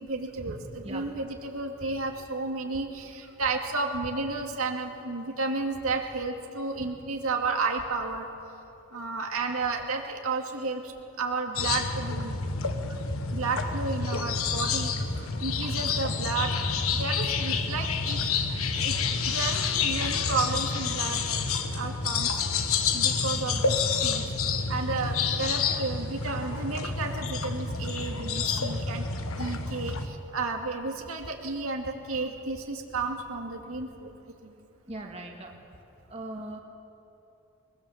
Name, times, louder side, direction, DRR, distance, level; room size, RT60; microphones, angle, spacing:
voice 1, 0.0-8.3 8.9-12.4 13.3-18.2 18.7-19.0 19.3-21.2 21.7-22.3 22.9-24.2 24.7-29.0 29.4-34.1 34.4-34.5, right 3 dB, 85° right, 2 dB, 2.3 m, -32 dB
sound 1, 11.5-30.1, left 5 dB, 80° left, 1.4 m, -29 dB
voice 2, 34.9-35.5 36.1-36.6, right 1 dB, 30° right, 1 dB, 1.8 m, -39 dB
22.5 x 22.0 x 7.3 m, 2.9 s
head